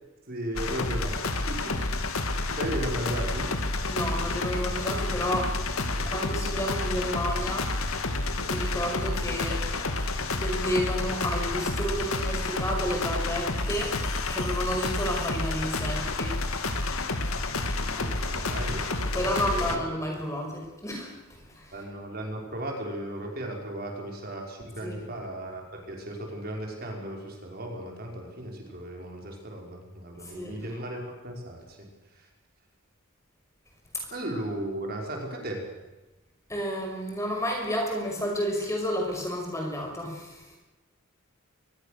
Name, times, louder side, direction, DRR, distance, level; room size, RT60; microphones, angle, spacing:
voice 1, 0.3-2.0 2.6-3.5 17.5-19.8 21.7-31.8 34.1-35.7, right 1 dB, 45° right, 1 dB, 5.2 m, -36 dB
sound 1, 0.5-19.8, left 2 dB, 80° left, 2.2 m, -29 dB
voice 2, 3.9-5.5 6.1-7.7 8.5-9.6 10.3-14.0 14.3-16.4 19.1-21.7 24.8-25.0 30.2-30.6 36.5-40.4, equal, 15° left, 1 dB, 5.7 m, -31 dB
24.0 x 21.0 x 6.7 m, 1.1 s
head